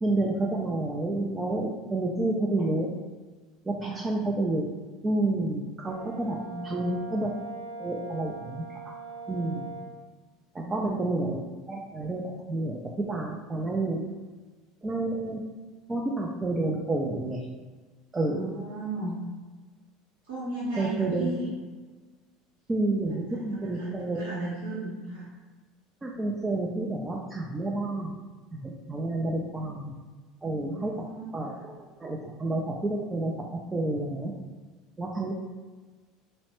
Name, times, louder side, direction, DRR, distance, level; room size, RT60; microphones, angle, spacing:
voice 1, 0.0-2.9 3.7-4.7 5.0-6.4 6.7-7.3 7.8-8.6 9.3-9.7 10.7-11.4 11.7-12.2 12.5-12.8 13.1-14.0 14.8-15.4 15.9-17.4 18.1-18.5 20.8-21.3 22.7-24.2 26.0-28.1 28.5-30.0 30.4-30.9 31.3-31.5 32.0-34.3 35.0-35.3, right 2 dB, 20° right, -2 dB, 0.4 m, -29 dB
Brass instrument, 5.8-9.9, right 4 dB, 80° left, 0.5 m, -41 dB
voice 2, 6.1-7.0 10.6-10.9 18.2-19.1 20.3-21.5 23.3-25.3 30.5-31.2 31.5-31.6, right 2 dB, 75° right, -9 dB, 0.9 m, -36 dB
3.0 x 2.1 x 3.0 m, 1.3 s
hypercardioid pair, 85°, 0 cm